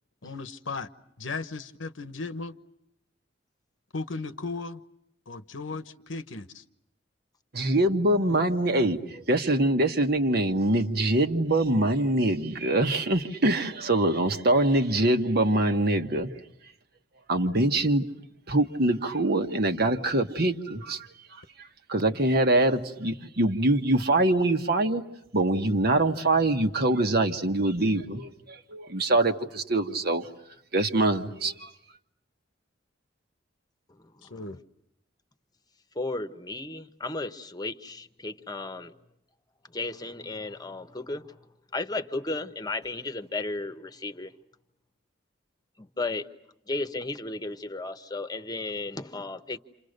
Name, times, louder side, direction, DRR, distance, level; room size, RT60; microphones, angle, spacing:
voice 1, 0.2-0.9 1.2-2.5 3.9-4.8 5.3-6.6 8.3-8.4 34.3-34.6, left 3 dB, 90° left, 1.1 m, -36 dB
voice 2, 7.5-16.3 17.3-18.1 18.5-21.1 21.9-25.0 25.3-30.3 30.7-31.7, right 2 dB, 55° right, 1.5 m, -24 dB
voice 3, 33.9-34.6 35.9-38.9 39.7-41.4 41.7-44.3 45.8-46.3 46.7-49.6, left 2 dB, 20° left, 1.1 m, -34 dB
29.5 x 27.5 x 6.7 m
head